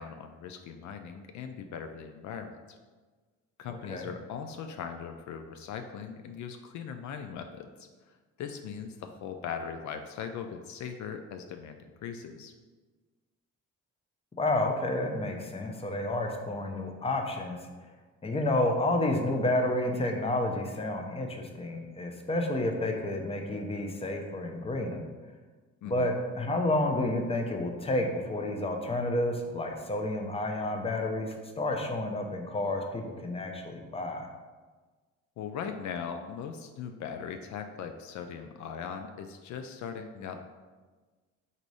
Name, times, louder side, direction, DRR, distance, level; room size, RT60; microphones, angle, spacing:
voice 1, 0.0-2.6 3.6-12.5 25.8-26.1 35.4-40.4, left 7 dB, 70° left, 6 dB, 0.4 m, -40 dB
voice 2, 3.7-4.1 14.4-17.6 18.2-25.0 25.8-34.3, left 1 dB, 20° left, 3 dB, 0.6 m, -30 dB
4.1 x 2.6 x 4.7 m, 1.4 s
cardioid pair, 90°, 30 cm